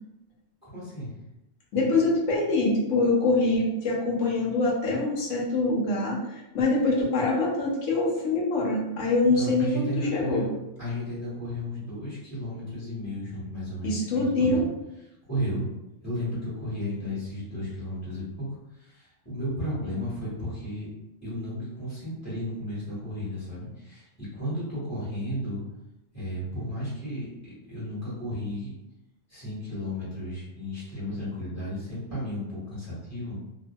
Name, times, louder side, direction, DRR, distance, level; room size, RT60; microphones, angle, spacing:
voice 1, 0.6-1.1 9.3-10.5 10.8-14.6 15.3-15.6 16.0-18.5 18.8-20.9 21.2-25.6 26.1-28.7 29.3-33.4, equal, 10° left, -10 dB, 1.5 m, -33 dB
voice 2, 1.7-6.2 6.5-10.4 13.8-14.6, left 2 dB, 70° left, -3 dB, 1.1 m, -24 dB
2.7 x 2.7 x 2.2 m, 0.92 s
omnidirectional pair, 1.4 m